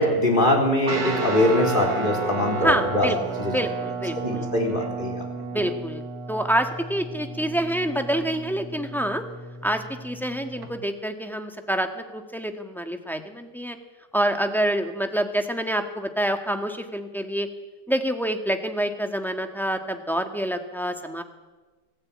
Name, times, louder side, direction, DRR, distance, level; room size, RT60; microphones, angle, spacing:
voice 1, 0.0-3.1 3.4-3.5 4.1-5.2, left 1 dB, 25° left, 1 dB, 4.4 m, -22 dB
Guitar, 0.8-10.7, right 4 dB, 55° right, 2.3 m, -33 dB
voice 2, 2.6-3.2 3.5-4.5 5.5-6.0 6.3-9.2 9.6-13.8 14.1-17.5 17.9-21.2, right 1 dB, ahead, 5 dB, 1.6 m, -27 dB
25.0 x 16.0 x 8.7 m, 1.3 s
omnidirectional pair, 1.9 m